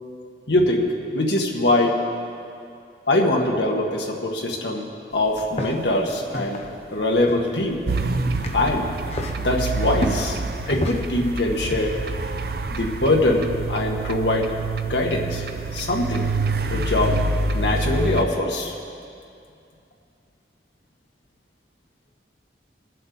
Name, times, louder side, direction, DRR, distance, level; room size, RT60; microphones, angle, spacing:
voice 1, 0.5-0.9 1.1-2.0 3.1-6.6 6.9-7.8 8.5-8.9 9.4-10.4 10.7-12.0 12.7-14.5 14.9-15.5 15.7-16.3 16.7-17.2 17.5-18.7, left 1 dB, 75° left, 0 dB, 1.6 m, -22 dB
sound 1, 5.1-11.9, left 1 dB, 35° left, 0.7 m, -33 dB
sound 2, 7.9-18.2, right 2 dB, 55° right, 0.5 m, -27 dB
21.5 x 7.6 x 4.0 m, 2.5 s
head